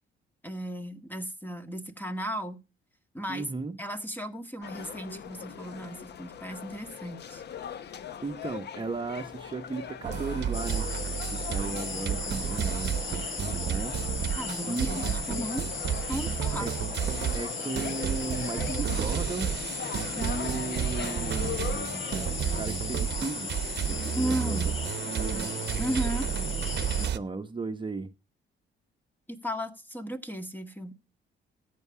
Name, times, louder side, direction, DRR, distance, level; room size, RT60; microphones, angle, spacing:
voice 1, 0.4-2.6 3.1-3.5 3.8-7.4 14.2-15.7 16.1-16.7 24.1-24.8 25.8-26.3 29.3-30.9, equal, 10° left, 1.6 m, -35 dB
voice 2, 3.3-3.8 8.2-10.9 11.3-14.0 14.7-15.0 16.6-16.7 17.3-19.5 20.1-22.2 22.5-23.5 23.9-24.6 25.2-25.5 27.0-28.1, right 3 dB, 25° right, 1.0 m, -36 dB
sound 1, 4.6-22.6, left 8 dB, 60° left, 0.9 m, -41 dB
sound 2, 10.0-27.2, right 9 dB, 60° right, 0.9 m, -32 dB
sound 3, 10.5-27.1, left 3 dB, 75° left, 6.4 m, -36 dB
14.0 x 8.4 x 4.9 m
cardioid pair, 90°, 20 cm